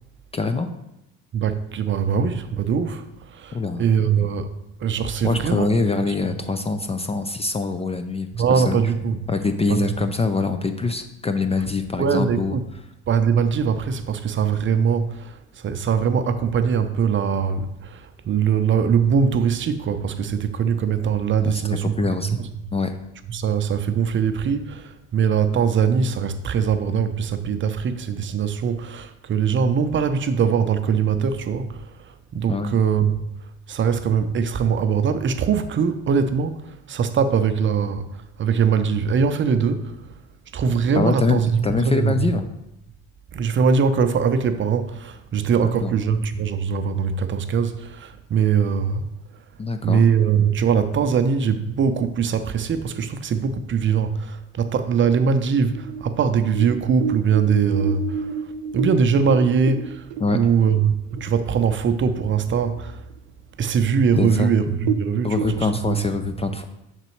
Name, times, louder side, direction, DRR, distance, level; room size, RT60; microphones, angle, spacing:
voice 1, 0.3-0.7 3.5-3.8 5.2-8.8 9.3-12.5 21.4-22.4 22.7-23.0 32.5-32.7 41.0-42.5 45.6-45.9 49.6-50.0 60.2-60.4 64.2-64.5 65.2-66.6, left 4 dB, 20° left, 0.4 m, -24 dB
voice 2, 1.3-4.5 4.8-5.7 6.1-6.2 8.3-9.2 9.7-9.9 12.0-12.6 13.1-22.5 23.3-33.3 33.7-40.1 40.5-42.3 43.3-49.0 49.8-63.0 63.6-66.0, right 6 dB, 35° right, 0.6 m, -22 dB
sound 1, 55.5-61.3 61.7-61.8 62.2-62.7 63.1-63.2 63.9-64.0 64.2-64.4 64.7-65.9, right 7 dB, 85° right, 0.6 m, -29 dB
6.0 x 4.0 x 4.5 m
supercardioid pair, 80°, 33 cm